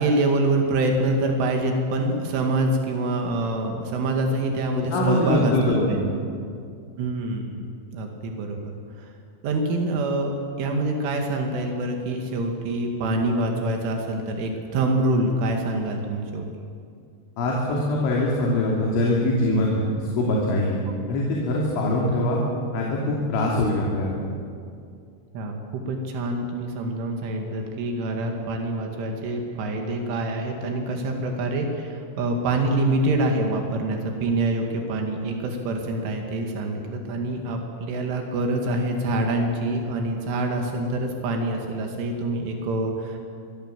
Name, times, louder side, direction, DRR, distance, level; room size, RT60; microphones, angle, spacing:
voice 1, 0.0-6.0 7.0-9.1 9.4-10.3 10.6-16.5 23.5-23.6 25.3-43.3, right 2 dB, 90° right, 2 dB, 4.7 m, -26 dB
voice 2, 4.7-6.1 17.4-20.8 21.1-22.4 22.7-24.2, left 1 dB, 80° left, -3 dB, 5.4 m, -23 dB
26.0 x 22.5 x 7.6 m, 2.3 s
omnidirectional pair, 5.4 m